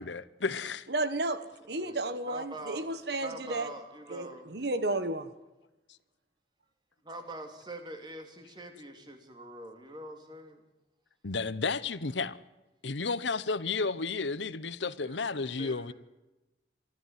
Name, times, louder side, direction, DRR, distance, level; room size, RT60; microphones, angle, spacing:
voice 1, 0.0-0.9 11.2-12.4 12.8-15.9, left 4 dB, 80° left, 1.0 m, -32 dB
voice 2, 0.9-1.4 1.7-3.7 4.1-5.3, right 2 dB, 65° right, 1.4 m, -32 dB
voice 3, 1.7-4.5 7.1-10.6 15.0-15.9, right 1 dB, 25° right, 2.9 m, -45 dB
24.0 x 14.0 x 9.5 m
head